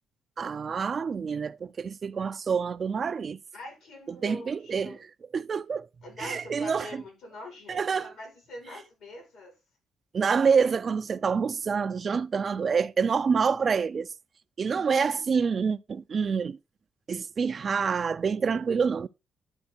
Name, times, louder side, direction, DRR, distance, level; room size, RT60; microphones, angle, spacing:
voice 1, 0.4-3.4 4.1-5.0 5.3-5.9 6.2-7.0 7.7-8.1 10.1-14.1 14.6-16.6 17.1-19.1, right 6 dB, 45° right, 0.3 m, -27 dB
voice 2, 3.5-5.0 6.0-9.5, left 1 dB, 80° left, 4.8 m, -44 dB
10.5 x 4.4 x 4.3 m
cardioid pair, 90°, 0 cm